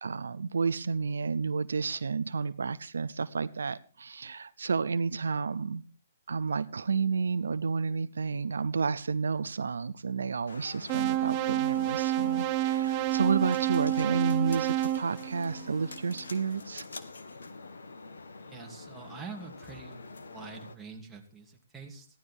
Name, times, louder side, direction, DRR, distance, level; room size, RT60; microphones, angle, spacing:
voice 1, 0.0-5.8 6.3-16.9, right 5 dB, 75° right, 15 dB, 0.6 m, -31 dB
sound 1, 10.5-20.8, left 3 dB, 75° left, 1.8 m, -46 dB
sound 2, 10.9-16.0, right 13 dB, 30° right, 0.5 m, -29 dB
voice 2, 18.4-22.1, right 5 dB, 10° right, 0 dB, 2.7 m, -45 dB
15.5 x 11.5 x 4.6 m, 0.38 s
hypercardioid pair, 135°, 0 cm